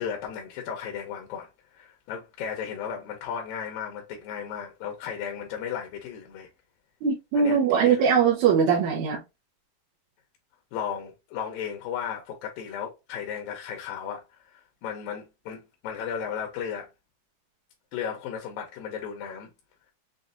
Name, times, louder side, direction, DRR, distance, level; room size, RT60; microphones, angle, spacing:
voice 1, 0.0-6.5 7.3-8.1 10.7-16.9 17.9-19.5, left 8 dB, 75° left, 2.3 m, -35 dB
voice 2, 7.0-9.2, right 7 dB, 75° right, 1.8 m, -21 dB
6.2 x 2.3 x 2.5 m
omnidirectional pair, 4.2 m